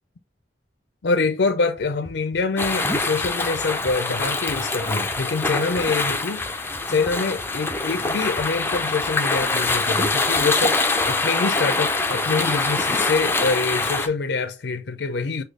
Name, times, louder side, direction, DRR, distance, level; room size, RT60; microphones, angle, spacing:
voice 1, 1.0-6.4 6.9-15.4, left 4 dB, 75° left, 0.5 m, -25 dB
Run, 1.8-11.2, left 1 dB, 20° right, 1.4 m, -44 dB
sound 1, 2.6-14.1, left 3 dB, 10° left, 0.4 m, -24 dB
6.5 x 2.3 x 3.1 m
head